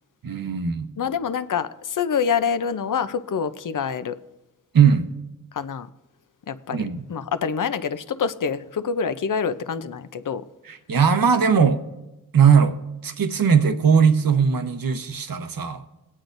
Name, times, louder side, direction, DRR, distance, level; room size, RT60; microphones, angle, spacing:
voice 1, 0.2-0.9 4.7-5.1 6.7-7.0 10.7-11.8 12.3-12.7 13.0-15.8, right 6 dB, 65° right, 1.0 m, -19 dB
voice 2, 1.0-4.2 5.5-5.9 6.5-6.8 7.1-10.4, left 6 dB, 60° left, 0.6 m, -26 dB
21.0 x 8.7 x 2.6 m
cardioid pair, 50°, 37 cm